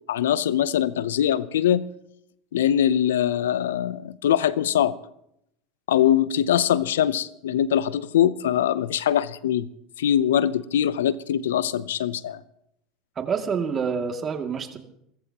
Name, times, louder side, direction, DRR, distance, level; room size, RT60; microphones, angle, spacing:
voice 1, 0.1-1.9 2.5-4.9 5.9-9.7 10.0-12.4, left 10 dB, 80° left, 18 dB, 0.7 m, -22 dB
voice 2, 13.2-14.8, right 6 dB, 35° right, 4 dB, 2.5 m, -27 dB
29.0 x 14.5 x 3.0 m, 0.75 s
hypercardioid pair, 85°, 0 cm